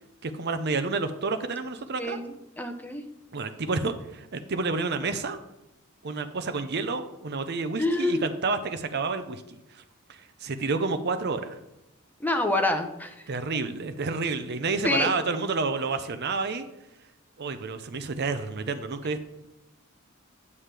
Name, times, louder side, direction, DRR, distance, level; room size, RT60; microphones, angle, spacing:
voice 1, 0.2-2.2 3.3-5.4 6.0-9.8 10.1-11.6 13.3-16.7 17.4-19.2, right 4 dB, 50° right, 9 dB, 0.6 m, -30 dB
voice 2, 2.0-3.0 7.8-8.3 12.2-13.3 14.8-15.1, left 2 dB, 10° left, 6 dB, 0.7 m, -27 dB
9.6 x 7.4 x 3.4 m, 0.91 s
head